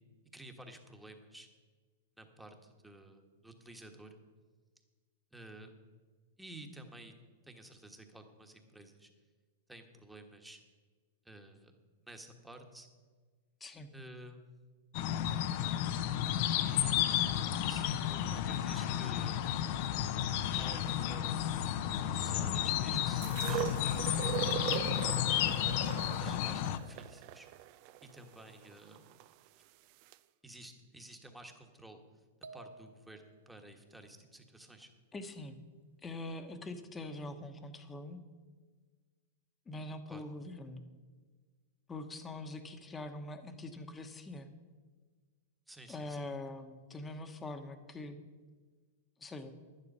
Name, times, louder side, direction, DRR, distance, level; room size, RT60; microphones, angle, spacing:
voice 1, 0.3-1.5 2.2-4.1 5.3-5.7 6.4-7.1 7.5-9.1 9.7-10.6 11.2-11.8 12.1-12.9 13.9-14.4 16.5-17.0 17.6-19.4 20.5-21.5 22.1-23.7 24.6-25.8 26.2-27.5 28.1-29.1 30.4-32.0 32.5-34.9 40.1-40.2 45.7-46.2, right 1 dB, 5° right, 4 dB, 1.4 m, -52 dB
voice 2, 13.6-13.9 22.8-23.0 35.1-35.6 36.0-38.2 39.7-40.8 41.9-44.5 45.9-48.2 49.2-49.5, left 2 dB, 15° left, 8 dB, 1.1 m, -43 dB
sound 1, 14.9-26.8, left 10 dB, 55° left, 0.7 m, -32 dB
sound 2, 23.2-29.3 30.1-30.2, right 14 dB, 50° right, 0.4 m, -40 dB
sound 3, 32.4-33.6, right 3 dB, 85° right, 0.7 m, -53 dB
11.5 x 10.0 x 5.5 m, 1.4 s
hypercardioid pair, 125°, 0 cm